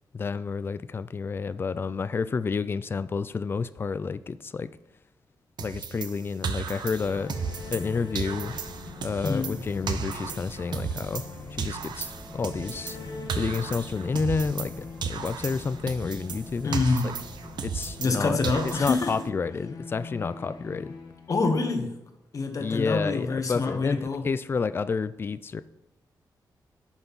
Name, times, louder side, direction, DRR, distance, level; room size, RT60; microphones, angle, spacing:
voice 1, 0.1-4.7 5.6-7.3 7.7-8.6 9.0-11.2 11.5-13.0 13.4-16.9 17.6-18.4 18.8-21.0 22.6-25.6, left 5 dB, 30° left, 14 dB, 0.3 m, -30 dB
sound 1, 5.6-7.9 8.2-11.3 11.6-14.8 15.0-18.2 18.4-19.3, right 6 dB, 80° right, 0.7 m, -35 dB
sound 2, 6.8-21.9, left 4 dB, 85° left, 1.4 m, -44 dB
sound 3, 6.9-19.0, left 1 dB, 5° left, 1.3 m, -45 dB
voice 2, 9.2-9.6 16.6-17.2 18.0-19.2 21.3-22.0 22.3-24.2, left 3 dB, 50° left, 6 dB, 1.1 m, -26 dB
10.0 x 5.7 x 4.0 m, 0.88 s
wide cardioid pair, 155°, 7 cm